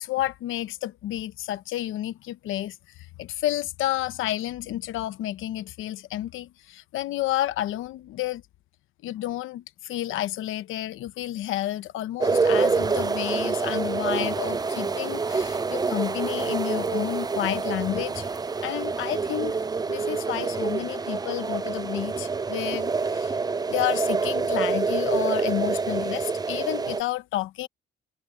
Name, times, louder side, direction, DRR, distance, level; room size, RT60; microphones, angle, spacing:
voice 1, 0.0-2.8 3.2-8.4 9.0-18.3 18.6-19.6 19.9-23.4 23.7-27.7, left 14 dB, 85° left, 0.9 m, -30 dB
sound 1, 12.2-27.0, right 4 dB, 20° right, 0.5 m, -27 dB
cardioid pair, 90°, 20 cm